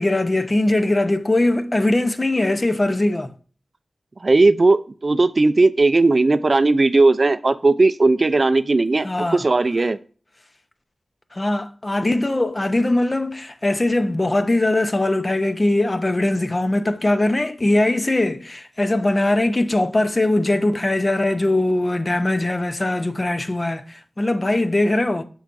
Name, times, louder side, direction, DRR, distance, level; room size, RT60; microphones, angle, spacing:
voice 1, 0.0-3.3 9.0-9.4 11.3-25.2, left 2 dB, 35° left, 0.6 m, -21 dB
voice 2, 4.2-10.0, right 3 dB, 50° right, 0.4 m, -17 dB
8.0 x 5.5 x 2.5 m
wide cardioid pair, 60°, 0 cm